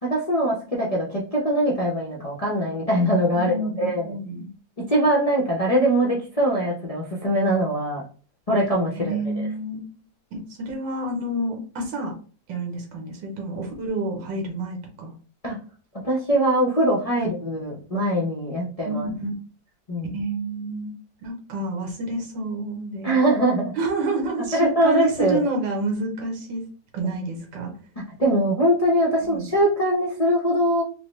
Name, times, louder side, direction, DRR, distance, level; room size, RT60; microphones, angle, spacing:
voice 1, 0.0-4.1 4.9-8.0 8.5-9.2 15.4-15.6 16.0-19.1 19.9-20.1 23.0-23.7 24.5-25.4 28.2-30.8, right 1 dB, 50° left, -4 dB, 0.4 m, -22 dB
voice 2, 3.3-4.5 8.9-9.8 10.3-12.1 12.5-15.1 17.2-17.3 18.8-19.3 20.1-20.9 21.2-23.2 23.8-26.6 26.9-27.7 29.3-29.4, right 2 dB, 90° right, 2 dB, 1.7 m, -29 dB
4.7 x 2.1 x 3.1 m, 0.38 s
omnidirectional pair, 1.9 m